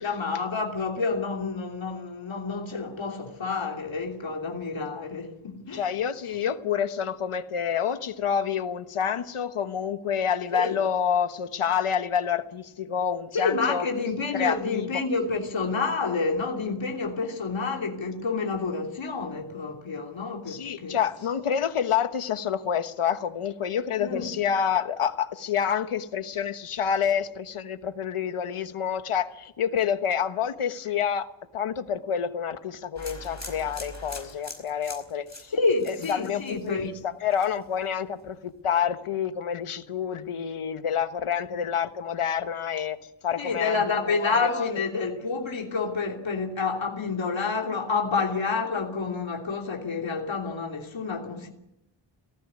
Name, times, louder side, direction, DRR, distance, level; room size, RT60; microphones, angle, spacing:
voice 1, 0.0-5.9 10.5-10.7 13.3-21.0 24.0-24.3 35.5-36.9 41.5-41.6 43.4-51.5, left 4 dB, 65° left, 3.1 m, -29 dB
voice 2, 5.7-13.8 14.3-15.0 20.5-31.3 31.5-35.5 35.9-36.9 37.2-43.0 43.2-43.8 44.1-44.7, left 8 dB, 85° left, 1.4 m, -28 dB
sound 1, 33.0-37.0 37.3-37.8, left 2 dB, 35° left, 5.1 m, -42 dB
18.5 x 15.0 x 9.8 m
wide cardioid pair, 95°, 50 cm